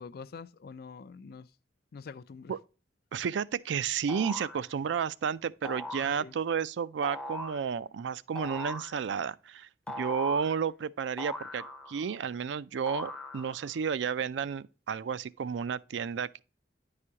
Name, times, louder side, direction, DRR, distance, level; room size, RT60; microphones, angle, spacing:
voice 1, 0.0-1.5 1.9-2.5 6.0-6.3, left 5 dB, 55° left, 0.4 m, -45 dB
voice 2, 3.1-9.7 9.9-16.4, right 6 dB, 70° right, 0.4 m, -32 dB
sound 1, 4.1-4.6 5.6-6.2 7.0-7.6 8.4-9.0 9.9-10.6 11.2-12.1 12.9-13.7, left 2 dB, 5° left, 0.6 m, -40 dB
9.9 x 4.8 x 2.8 m
head